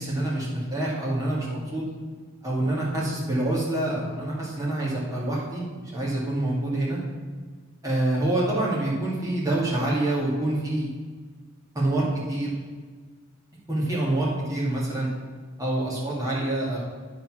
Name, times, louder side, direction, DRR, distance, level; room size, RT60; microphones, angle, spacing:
voice 1, 0.0-1.8 2.4-7.0 7.8-10.9 11.7-12.5 13.7-15.1 15.6-16.8, right 1 dB, 15° right, -6 dB, 2.2 m, -26 dB
10.0 x 4.1 x 6.1 m, 1.5 s
head